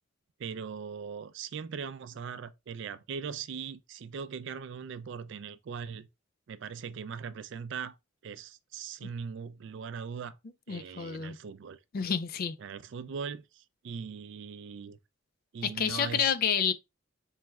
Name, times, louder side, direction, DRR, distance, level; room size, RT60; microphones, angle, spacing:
voice 1, 0.4-6.1 6.5-8.0 8.2-10.4 10.7-11.8 12.6-15.0 15.5-16.3, right 6 dB, 60° right, 0.4 m, -40 dB
voice 2, 10.7-11.4 11.9-12.6 15.6-16.7, left 7 dB, 45° left, 0.4 m, -29 dB
4.4 x 3.1 x 2.3 m
head